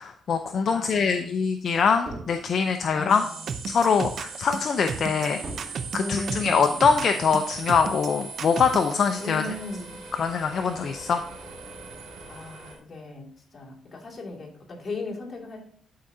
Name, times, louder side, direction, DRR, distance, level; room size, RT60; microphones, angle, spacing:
voice 1, 0.0-3.2 3.7-5.4 5.6-9.4 10.1-11.2, left 5 dB, 55° left, 6 dB, 0.6 m, -23 dB
voice 2, 0.7-1.4 2.9-3.4 6.0-7.2 9.2-10.0 12.3-15.7, left 2 dB, 35° left, -2 dB, 2.5 m, -37 dB
sound 1, 1.8-2.4 3.5-3.9 4.9-5.8 6.5-6.9, right 2 dB, 25° right, 2.2 m, -41 dB
sound 2, 3.1-12.8, right 4 dB, 85° right, 2.1 m, -40 dB
sound 3, 3.5-8.9, right 6 dB, 60° right, 0.6 m, -33 dB
11.0 x 4.8 x 2.7 m, 0.62 s
cardioid pair, 85°, 0 cm